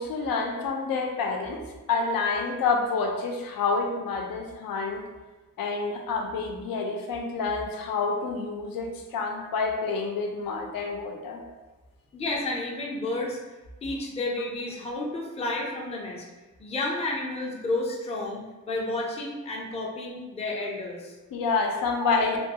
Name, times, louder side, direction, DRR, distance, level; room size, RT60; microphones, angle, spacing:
voice 1, 0.0-1.6 1.9-5.0 5.6-11.4 21.3-22.4, left 4 dB, 90° left, 2 dB, 0.5 m, -28 dB
voice 2, 12.1-13.4 13.8-16.2 16.6-21.1 22.0-22.1, left 2 dB, 20° left, -3 dB, 0.4 m, -31 dB
2.9 x 2.3 x 2.7 m, 1.2 s
wide cardioid pair, 135°, 33 cm